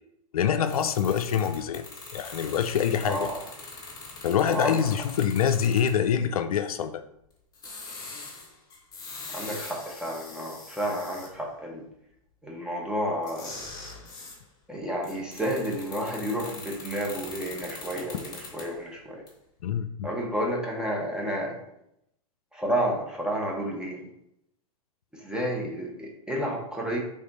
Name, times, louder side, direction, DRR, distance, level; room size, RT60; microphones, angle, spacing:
voice 1, 0.3-1.9 2.1-3.3 4.2-7.0 19.6-20.1, left 8 dB, 80° left, 9 dB, 0.4 m, -25 dB
sound 1, 0.6-6.0 7.5-11.3 13.2-14.4 15.0-18.8 19.3-19.4, left 3 dB, 20° left, 1.5 m, -42 dB
voice 2, 3.0-3.4 4.5-4.8 9.3-11.8 12.4-13.6 14.7-19.2 20.0-21.6 22.5-24.1 25.1-27.0, equal, 5° right, -3 dB, 1.1 m, -31 dB
3.6 x 3.2 x 3.9 m, 0.79 s
hypercardioid pair, 110°, 19 cm